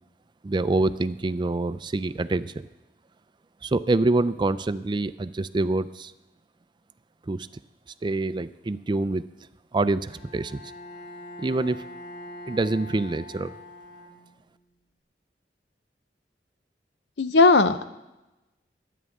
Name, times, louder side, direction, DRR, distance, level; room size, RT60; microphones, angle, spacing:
voice 1, 0.4-2.7 3.6-6.1 7.3-7.5 8.0-9.2 9.7-10.6 11.4-11.9 12.5-13.5, right 2 dB, 25° right, 14 dB, 0.4 m, -26 dB
Bowed string instrument, 10.1-14.6, left 1 dB, 45° left, 6.0 m, -43 dB
voice 2, 17.2-17.8, left 3 dB, 75° left, 11 dB, 0.8 m, -17 dB
23.5 x 9.4 x 3.6 m, 1.0 s
head